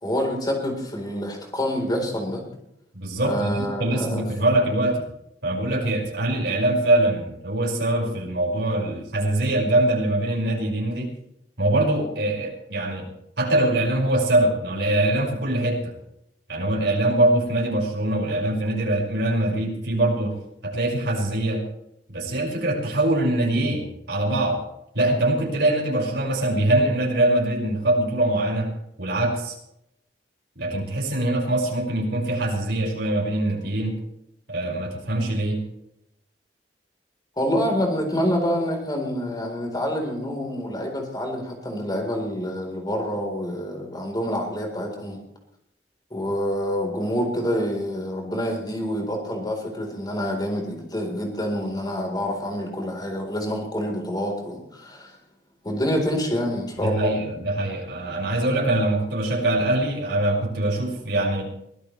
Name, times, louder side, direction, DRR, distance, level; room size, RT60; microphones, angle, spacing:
voice 1, 0.0-2.4 3.2-4.2 37.4-45.2 46.1-55.1 55.6-57.2, equal, 25° left, 1 dB, 4.2 m, -27 dB
voice 2, 2.9-3.5 3.8-5.0 5.4-11.1 11.6-13.1 13.4-15.9 16.5-20.4 20.6-21.6 22.1-24.6 24.9-28.7 29.0-29.5 30.6-34.0 34.5-35.6 56.8-61.5, right 1 dB, 70° right, -2 dB, 5.7 m, -23 dB
23.0 x 16.0 x 3.3 m, 0.79 s
head